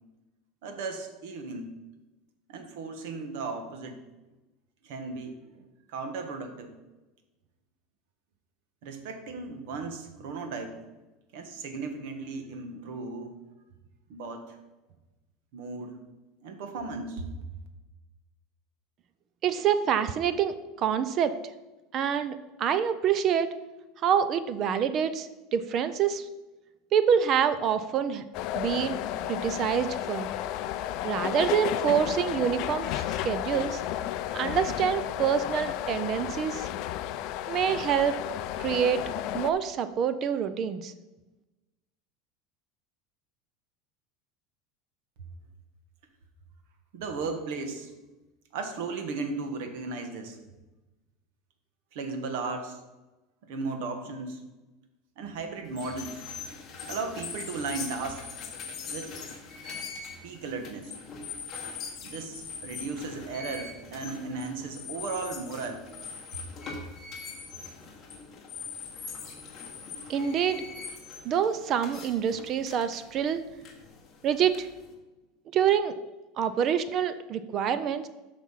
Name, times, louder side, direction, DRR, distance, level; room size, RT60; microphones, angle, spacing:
voice 1, 0.6-1.7 2.5-4.0 4.8-6.7 8.8-10.8 11.3-13.3 14.1-14.6 15.5-16.0 16.4-17.2 46.9-47.9 48.5-50.4 51.9-52.8 53.4-54.4 55.2-56.2 56.9-58.2 58.8-59.2 60.2-60.9 62.0-65.8 67.3-67.4, right 4 dB, 60° right, 6 dB, 1.4 m, -36 dB
voice 2, 19.4-21.4 21.9-23.5 24.0-26.3 26.9-28.2 28.5-29.0 29.3-30.3 31.0-33.8 34.3-36.7 37.5-38.2 38.6-39.0 39.3-40.9 70.1-70.6 71.2-73.4 74.2-74.7 75.5-75.9 76.4-78.1, right 8 dB, 30° right, 12 dB, 0.4 m, -26 dB
sound 1, 28.3-39.5, left 12 dB, 45° left, 0.4 m, -32 dB
sound 2, 55.7-74.9, left 5 dB, 25° left, 1.3 m, -42 dB
8.2 x 6.0 x 5.7 m, 1.1 s
supercardioid pair, 175°, 0 cm